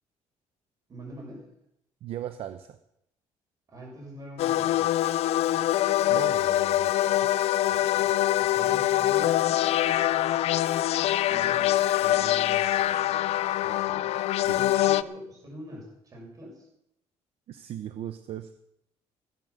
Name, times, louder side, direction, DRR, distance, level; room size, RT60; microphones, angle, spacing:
voice 1, 0.9-1.4 3.7-4.9 7.6-9.6 11.3-13.2 13.6-14.2 14.5-16.7, equal, 30° right, 0 dB, 6.3 m, -45 dB
voice 2, 2.0-2.8 6.1-6.9 7.2-7.3 14.5-14.6 17.5-18.5, right 11 dB, 55° right, 10 dB, 0.8 m, -37 dB
sound 1, 4.4-15.0, left 14 dB, 60° left, 0.5 m, -24 dB
17.0 x 10.5 x 6.7 m, 0.80 s
cardioid pair, 175°, 12 cm